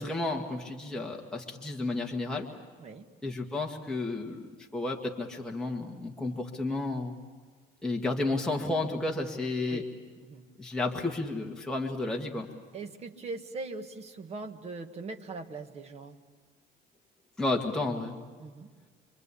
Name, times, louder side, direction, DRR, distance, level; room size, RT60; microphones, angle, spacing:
voice 1, 0.0-2.5 3.2-7.1 7.8-9.8 10.6-12.5 17.4-18.2, left 2 dB, 5° left, -1 dB, 1.8 m, -32 dB
voice 2, 12.7-16.2 18.4-18.7, right 3 dB, 35° right, 5 dB, 1.7 m, -41 dB
27.0 x 24.5 x 8.4 m, 1.4 s
cardioid pair, 155°, 19 cm